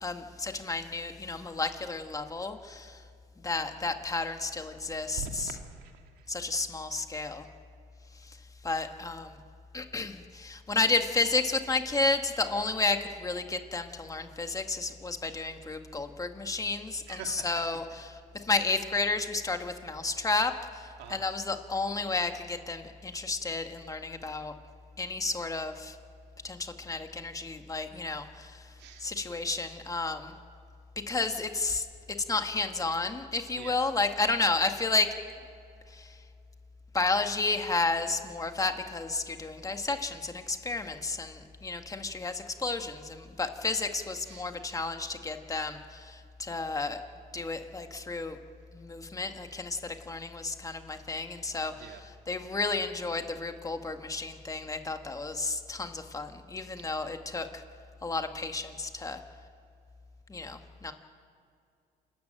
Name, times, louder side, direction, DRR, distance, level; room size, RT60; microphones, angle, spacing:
voice 1, 0.0-3.0 3.4-5.5 6.3-7.5 8.2-8.4 8.6-9.4 9.7-24.5 25.0-26.0 26.4-28.7 29.0-30.4 31.1-31.9 32.3-35.1 35.9-36.2 36.9-47.0 47.3-48.4 48.7-57.6 58.0-59.2 60.3-60.9, left 3 dB, 20° left, 6 dB, 1.8 m, -32 dB
voice 2, 5.2-6.3 17.1-17.6 21.0-21.2 28.8-29.1 33.5-33.8 44.2-44.5 51.7-52.0 56.8-56.9, right 7 dB, 85° right, 4 dB, 2.4 m, -44 dB
29.0 x 13.5 x 9.0 m, 2.4 s
cardioid pair, 110°, 17 cm